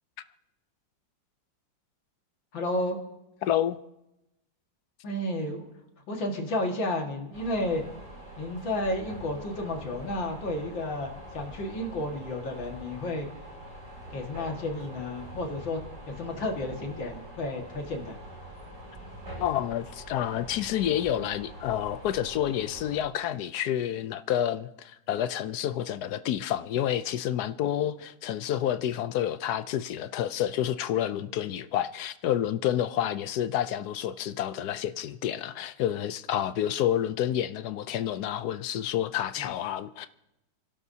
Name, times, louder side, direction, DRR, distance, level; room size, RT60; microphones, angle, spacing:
voice 1, 2.5-3.0 5.0-5.6 6.1-7.8 8.4-13.3 14.1-15.8 16.1-18.2 39.4-39.5, left 1 dB, 90° left, 2.6 m, -32 dB
voice 2, 3.4-3.8 19.4-40.1, left 11 dB, 70° left, 1.0 m, -29 dB
sound 1, 7.3-23.0, right 1 dB, 65° right, 8.0 m, -44 dB
29.5 x 12.0 x 2.8 m
omnidirectional pair, 2.0 m